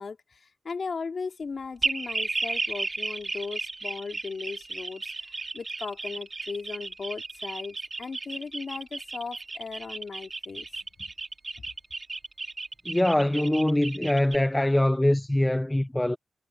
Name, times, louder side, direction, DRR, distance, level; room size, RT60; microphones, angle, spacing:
voice 1, 0.0-11.1, left 4 dB, 55° left, 3.0 m, -37 dB
sound 1, 1.8-14.4, right 3 dB, 35° right, 2.5 m, -34 dB
voice 2, 12.8-16.2, left 1 dB, 10° left, 0.8 m, -23 dB
cardioid pair, 85°, 0 cm